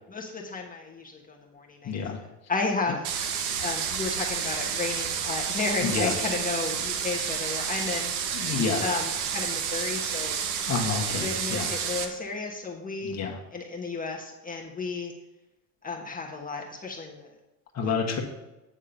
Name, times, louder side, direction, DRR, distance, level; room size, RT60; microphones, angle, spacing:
voice 1, 0.1-2.0 2.5-3.0 3.6-8.1 8.8-10.4 11.2-13.1 13.5-15.1 15.8-17.3 17.8-18.0, left 4 dB, 20° left, 0 dB, 1.3 m, -33 dB
voice 2, 1.8-2.2 5.8-6.1 8.3-8.8 10.7-11.7 13.0-13.4 17.7-18.2, left 5 dB, 35° left, 1 dB, 1.4 m, -29 dB
sound 1, 3.0-12.1, right 7 dB, 70° right, 1.1 m, -30 dB
8.8 x 3.6 x 6.9 m, 1.0 s
supercardioid pair, 95°, 46 cm